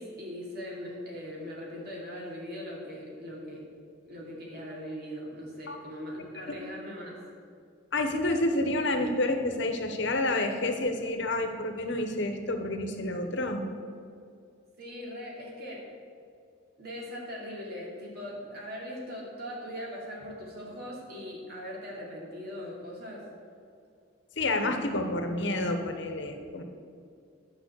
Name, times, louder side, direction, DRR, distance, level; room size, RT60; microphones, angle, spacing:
voice 1, 0.0-3.7 4.0-7.2 14.8-15.8 16.8-23.2, equal, 55° right, -3 dB, 2.7 m, -40 dB
voice 2, 7.9-13.6 24.4-26.6, left 2 dB, 60° left, 6 dB, 1.0 m, -29 dB
11.0 x 5.7 x 8.1 m, 2.3 s
head